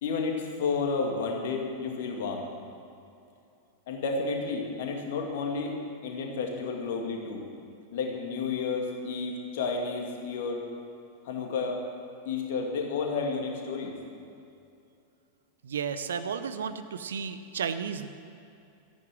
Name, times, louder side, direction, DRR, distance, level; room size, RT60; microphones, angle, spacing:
voice 1, 0.0-2.5 3.9-5.7 6.0-7.4 7.9-10.6 11.2-11.8 12.3-13.9, left 4 dB, 55° left, 1 dB, 2.3 m, -31 dB
voice 2, 15.6-18.1, right 7 dB, 65° right, 11 dB, 0.7 m, -33 dB
13.5 x 10.5 x 7.5 m, 2.6 s
figure-of-eight pair, 90°, 0 cm